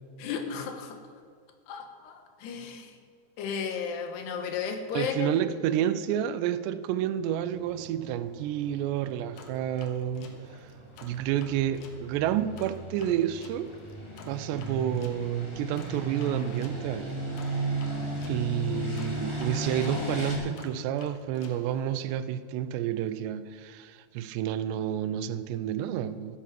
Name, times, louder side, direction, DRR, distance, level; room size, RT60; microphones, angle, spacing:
voice 1, 0.2-1.0 1.7-3.0 3.4-5.4, left 6 dB, 75° left, 3.2 m, -34 dB
voice 2, 4.9-10.3 11.0-13.7 14.3-17.1 17.5-17.8 18.3-26.4, right 10 dB, 85° right, 2.8 m, -30 dB
sound 1, 7.4-20.4, right 1 dB, 10° left, 1.8 m, -36 dB
sound 2, 9.4-12.0 12.6-18.4 19.0-22.2, left 4 dB, 60° left, 2.2 m, -51 dB
13.5 x 10.0 x 7.5 m
omnidirectional pair, 4.9 m